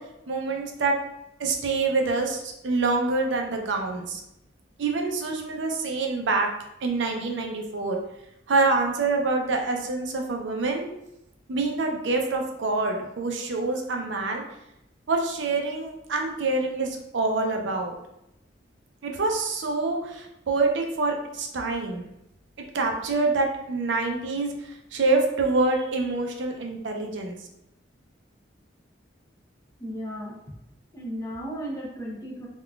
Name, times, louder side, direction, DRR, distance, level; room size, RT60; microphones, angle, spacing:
voice 1, 0.3-1.0 1.4-4.2 4.8-6.5 6.8-8.0 8.5-10.9 11.5-14.4 15.1-17.9 19.0-22.0 22.7-27.4, right 3 dB, 75° right, 2 dB, 0.5 m, -26 dB
voice 2, 29.8-30.5 30.9-32.5, equal, 15° left, -3 dB, 0.5 m, -35 dB
3.6 x 2.3 x 2.3 m, 0.85 s
head